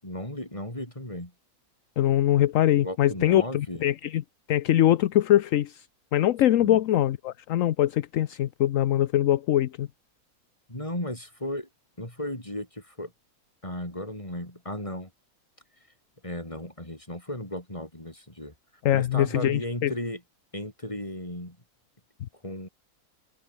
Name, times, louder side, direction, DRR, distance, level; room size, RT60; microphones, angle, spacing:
voice 1, 0.0-1.3 2.8-3.8 6.6-6.8 10.7-11.7 12.0-13.1 13.6-15.1 16.2-18.5 18.9-20.2 20.5-21.6 22.4-22.7, left 1 dB, 20° left, 5.9 m, -35 dB
voice 2, 2.0-4.2 4.5-5.9 6.1-9.9 18.8-19.9, left 12 dB, 65° left, 1.0 m, -23 dB
omnidirectional pair, 1.7 m